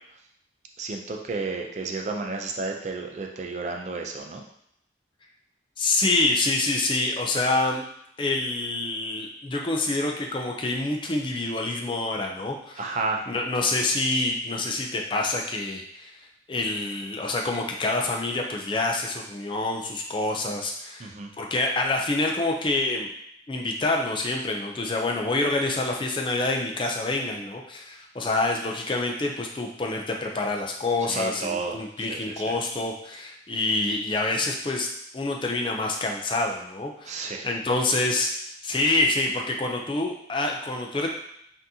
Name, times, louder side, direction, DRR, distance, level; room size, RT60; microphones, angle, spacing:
voice 1, 0.8-4.4 12.8-13.3 21.0-21.3 31.1-32.5 37.1-37.5, right 3 dB, 40° right, 2 dB, 0.4 m, -32 dB
voice 2, 5.8-7.8 8.2-12.9 13.3-16.1 16.5-21.1 21.4-23.1 23.5-34.9 35.1-38.3 38.6-41.1, left 2 dB, 25° left, 1 dB, 0.4 m, -27 dB
5.7 x 2.7 x 2.7 m, 0.72 s
head